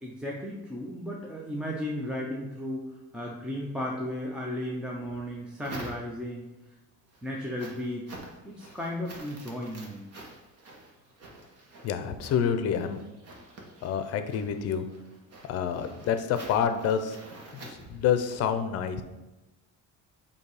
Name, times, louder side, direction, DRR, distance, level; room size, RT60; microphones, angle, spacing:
voice 1, 0.0-2.9 3.1-6.5 7.2-8.1 8.4-10.1, left 1 dB, 5° right, -2 dB, 0.4 m, -35 dB
sound 1, 5.0-6.5 6.9-18.5, right 2 dB, 50° right, 1.3 m, -48 dB
voice 2, 11.8-13.0 13.8-14.9 15.5-17.2 17.5-19.0, left 8 dB, 50° left, 9 dB, 0.6 m, -28 dB
7.0 x 2.8 x 4.8 m, 1.0 s
cardioid pair, 160°, 32 cm